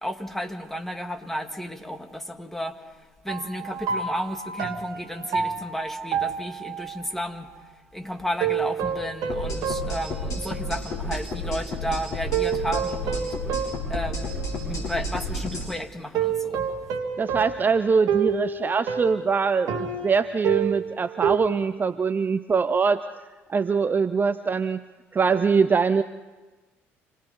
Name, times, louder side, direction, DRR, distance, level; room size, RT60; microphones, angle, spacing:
voice 1, 0.0-2.8 3.2-7.5 7.9-13.4 13.9-16.7, equal, 5° left, 5 dB, 2.1 m, -33 dB
sound 1, 3.3-7.1 8.4-11.0 11.4-11.5 12.3-14.8 16.1-21.4, right 7 dB, 55° right, 1.6 m, -29 dB
sound 2, 9.3-15.7, left 1 dB, 50° left, 6.8 m, -31 dB
voice 2, 17.2-23.0 23.5-24.8 25.1-26.0, right 5 dB, 25° right, 12 dB, 0.7 m, -23 dB
27.0 x 18.5 x 5.4 m, 1.2 s
figure-of-eight pair, 55°, 7 cm